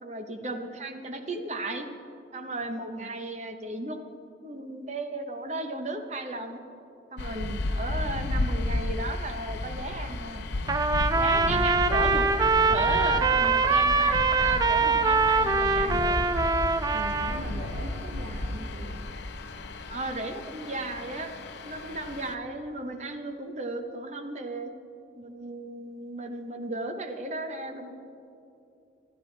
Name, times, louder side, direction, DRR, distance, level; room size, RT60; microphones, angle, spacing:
voice 1, 0.0-1.9 2.3-4.0 4.4-6.6 7.1-7.5 7.8-10.4 11.1-16.3 19.9-21.3 21.6-24.7 25.2-27.9, right 2 dB, 40° right, 6 dB, 0.9 m, -35 dB
sound 1, 7.2-22.3, left 2 dB, 85° left, 0.7 m, -33 dB
voice 2, 7.3-7.7 11.5-11.9 16.9-19.1, right 2 dB, 90° right, -1 dB, 1.2 m, -41 dB
Trumpet, 10.7-17.4, right 4 dB, 20° right, 0.3 m, -23 dB
25.5 x 9.2 x 3.3 m, 2.7 s
head